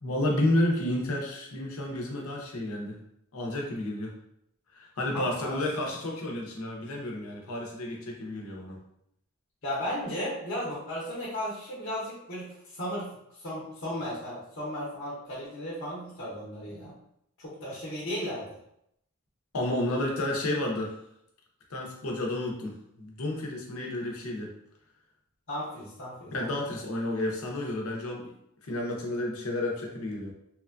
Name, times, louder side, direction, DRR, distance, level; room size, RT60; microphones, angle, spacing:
voice 1, 0.0-3.0 3.3-4.1 4.7-8.8 19.5-20.9 21.7-24.5 26.3-28.3 28.6-30.3, left 1 dB, 85° left, 0 dB, 0.7 m, -31 dB
voice 2, 5.1-5.6 9.6-13.1 13.4-17.0 17.4-18.6 25.5-26.5, equal, 50° left, -7 dB, 0.8 m, -35 dB
3.0 x 2.2 x 2.4 m, 0.76 s
head